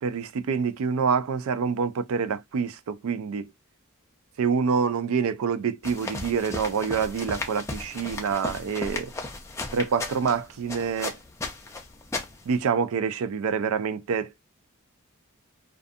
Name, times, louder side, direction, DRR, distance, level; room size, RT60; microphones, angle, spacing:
voice 1, 0.0-3.5 4.4-9.1 9.7-11.2 12.5-14.3, right 6 dB, 75° right, 0.3 m, -26 dB
sound 1, 5.8-12.6, left 3 dB, 15° left, 0.4 m, -35 dB
2.3 x 2.3 x 2.6 m
head